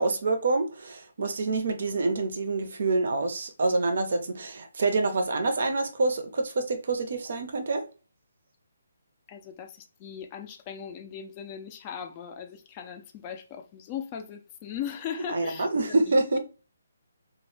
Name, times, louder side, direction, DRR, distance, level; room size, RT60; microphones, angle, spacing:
voice 1, 0.0-7.8 15.3-16.4, right 3 dB, 55° right, 0.5 m, -26 dB
voice 2, 9.3-16.4, left 8 dB, 25° left, 0.3 m, -39 dB
2.0 x 2.0 x 3.0 m
figure-of-eight pair, 140°, 0 cm